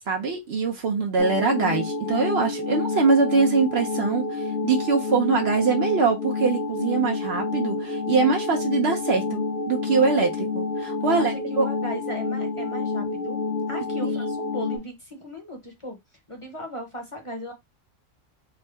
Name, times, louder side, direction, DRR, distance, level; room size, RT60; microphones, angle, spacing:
voice 1, 0.1-11.7 14.0-14.1, right 4 dB, 60° right, 0.9 m, -23 dB
sound 1, 1.2-14.8, left 4 dB, 65° left, 1.2 m, -28 dB
voice 2, 11.0-16.0 16.3-17.5, equal, 30° left, 0.9 m, -37 dB
3.5 x 2.1 x 3.3 m
omnidirectional pair, 1.3 m